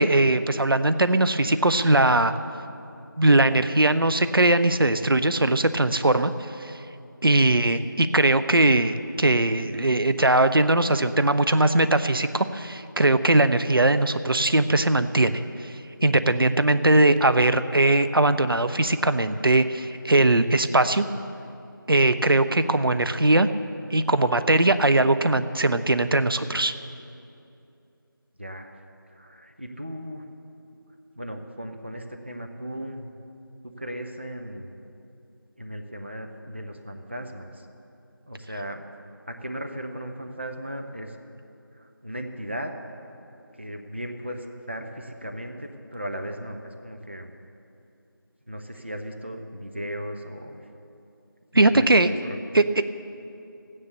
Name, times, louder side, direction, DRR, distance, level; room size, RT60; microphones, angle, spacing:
voice 1, 0.0-2.3 3.2-6.3 6.6-6.8 7.2-15.7 16.0-21.0 21.9-23.5 23.9-26.7 51.5-52.1 52.5-52.6, right 2 dB, 80° right, 11 dB, 0.6 m, -20 dB
voice 2, 28.4-28.7 29.1-30.2 31.2-33.2 33.6-34.7 35.6-37.7 38.3-38.8 39.3-41.2 41.7-42.7 43.6-47.3 48.5-50.6 51.5-52.6, equal, 30° right, 4 dB, 0.7 m, -36 dB
15.0 x 9.9 x 6.7 m, 2.7 s
figure-of-eight pair, 175°, 12 cm